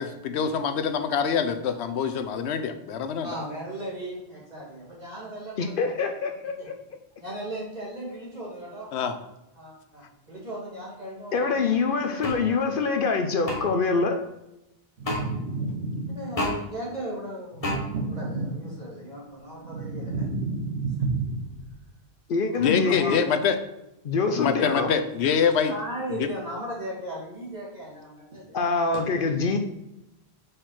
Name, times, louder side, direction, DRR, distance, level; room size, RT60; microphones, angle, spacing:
voice 1, 0.0-3.3 8.9-9.2 22.6-23.5 24.4-25.7 26.2-26.3, left 6 dB, 90° left, 9 dB, 0.9 m, -25 dB
voice 2, 3.2-5.7 6.6-6.7 7.2-8.9 9.5-12.6 16.1-20.3 22.5-23.4 25.7-28.8, right 1 dB, 40° right, -5 dB, 2.7 m, -37 dB
voice 3, 5.6-6.7 11.3-14.2 22.3-23.2 24.0-24.9 28.5-29.6, left 4 dB, 60° left, 6 dB, 0.8 m, -25 dB
sound 1, 12.2-12.4 13.5-13.6 15.0-15.2 16.4-16.6 17.6-17.8, left 2 dB, 35° left, 1.5 m, -27 dB
sound 2, 15.0-16.6 17.5-19.0 19.4-21.8, right 3 dB, 90° right, 1.1 m, -31 dB
4.9 x 4.5 x 5.7 m, 0.90 s
omnidirectional pair, 1.1 m